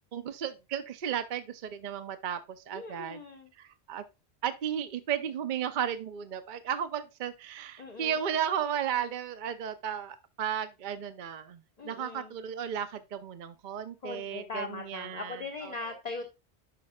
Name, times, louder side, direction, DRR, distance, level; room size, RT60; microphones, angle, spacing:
voice 1, 0.1-2.4 2.7-3.2 3.6-4.0 4.4-15.7, right 9 dB, 55° right, 0.7 m, -34 dB
voice 2, 2.7-3.5 7.8-8.2 11.8-12.3 14.0-16.3, left 3 dB, 40° left, 1.0 m, -40 dB
10.5 x 5.8 x 2.3 m
omnidirectional pair, 1.1 m